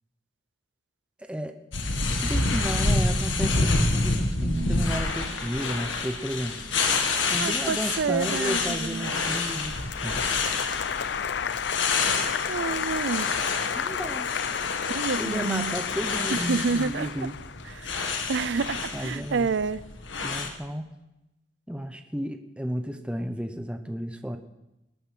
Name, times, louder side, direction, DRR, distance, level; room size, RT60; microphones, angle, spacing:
voice 1, 1.2-1.6 2.1-6.6 7.3-10.2 13.7-14.3 15.2-17.3 18.9-19.5 20.2-20.9 21.7-24.4, equal, 5° right, 6 dB, 0.9 m, -33 dB
sound 1, 1.7-20.5, left 3 dB, 85° left, 1.7 m, -28 dB
voice 2, 4.4-5.1 7.4-9.1 12.4-13.3 14.9-15.8 16.3-17.3 17.7-17.9 18.3-19.8, right 5 dB, 65° right, 18 dB, 0.5 m, -29 dB
Applause, 9.4-18.5, left 7 dB, 65° left, 0.5 m, -32 dB
20.5 x 9.3 x 6.1 m, 0.94 s
head